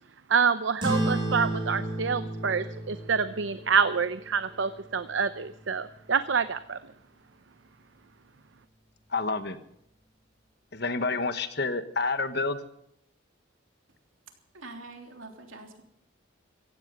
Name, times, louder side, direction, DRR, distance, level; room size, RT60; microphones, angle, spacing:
voice 1, 0.3-6.8, right 6 dB, 70° right, 12 dB, 0.6 m, -27 dB
sound 1, 0.8-5.7, right 1 dB, 25° right, 7.0 m, -33 dB
voice 2, 9.1-9.6 10.7-12.6, left 3 dB, 55° left, 10 dB, 1.3 m, -28 dB
voice 3, 14.5-15.8, right 2 dB, 85° right, 3 dB, 3.3 m, -44 dB
16.5 x 15.5 x 5.5 m, 0.75 s
head